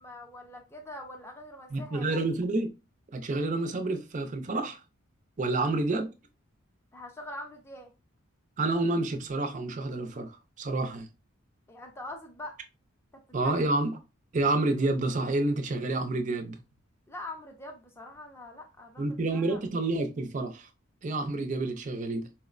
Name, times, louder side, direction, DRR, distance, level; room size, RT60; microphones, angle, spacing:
voice 1, 0.0-2.2 5.4-5.7 6.9-7.9 11.7-12.6 13.1-13.6 17.1-19.0 19.3-19.6, left 1 dB, 10° left, 0.5 m, -43 dB
voice 2, 1.7-2.7 3.1-4.8 5.4-6.1 8.6-11.1 13.3-13.9 14.3-16.6 19.0-20.7 21.0-22.3, right 2 dB, 35° right, 0.5 m, -29 dB
4.3 x 2.1 x 2.4 m
head